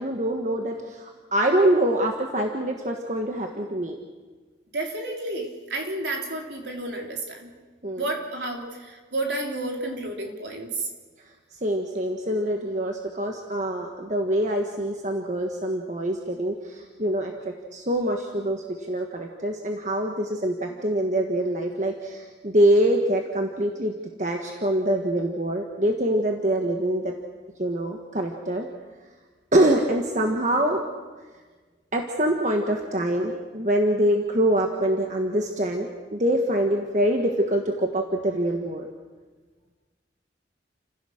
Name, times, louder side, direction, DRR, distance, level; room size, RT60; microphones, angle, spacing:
voice 1, 0.0-4.0 7.8-8.0 11.6-17.3 17.7-27.1 27.6-28.7 29.5-30.8 31.9-38.9, right 1 dB, 40° right, 2 dB, 1.5 m, -24 dB
voice 2, 4.7-7.5 8.0-10.9, right 2 dB, 65° right, 1 dB, 3.6 m, -31 dB
30.0 x 15.5 x 6.5 m, 1.4 s
head